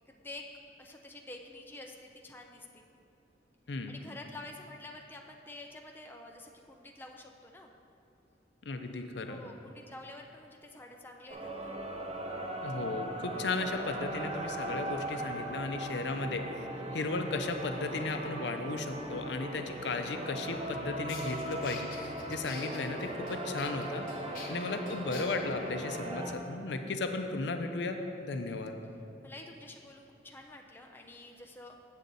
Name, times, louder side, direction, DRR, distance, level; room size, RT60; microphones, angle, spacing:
voice 1, 0.1-0.5 0.8-2.9 3.9-7.7 9.2-11.8 24.2-24.8 29.2-31.8, left 2 dB, 10° left, 1 dB, 0.4 m, -49 dB
voice 2, 8.6-9.4 12.6-16.5 16.9-24.1 24.5-28.7, left 3 dB, 70° left, 6 dB, 0.5 m, -35 dB
sound 1, 11.3-26.3, right 1 dB, 35° right, 0.6 m, -39 dB
sound 2, 20.6-20.7 21.1-25.2, left 4 dB, 50° left, 1.0 m, -47 dB
8.1 x 7.3 x 4.0 m, 2.6 s
head